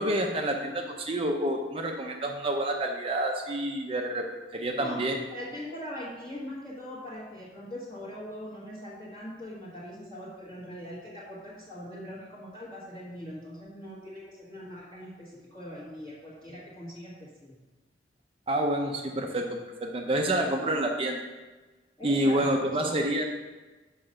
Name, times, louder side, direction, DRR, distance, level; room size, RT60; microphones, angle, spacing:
voice 1, 0.0-4.3 4.5-5.2 18.5-21.2 22.0-23.3, right 1 dB, 30° right, 2 dB, 0.6 m, -28 dB
voice 2, 5.3-17.5 22.0-23.0, left 1 dB, 25° left, -8 dB, 1.4 m, -41 dB
5.9 x 5.4 x 6.5 m, 1.2 s
head